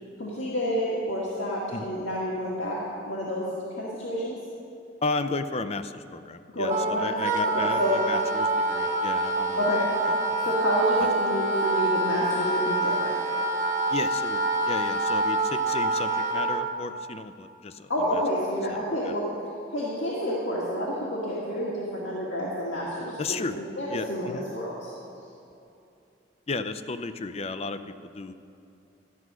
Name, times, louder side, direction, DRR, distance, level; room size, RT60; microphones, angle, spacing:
voice 1, 0.2-3.5 3.8-4.4 6.5-8.0 9.6-9.8 10.4-13.1 17.9-19.3 19.7-24.9, equal, 80° left, -6 dB, 2.0 m, -29 dB
voice 2, 5.0-9.6 10.1-10.2 10.4-10.5 13.9-18.2 19.0-19.1 23.2-23.6 23.9-24.4 26.5-28.3, left 3 dB, 35° left, 11 dB, 0.5 m, -33 dB
Wind instrument woodwind instrument, 6.7-16.7, right 2 dB, 45° right, 1.1 m, -26 dB
13.5 x 9.4 x 6.2 m, 2.7 s
head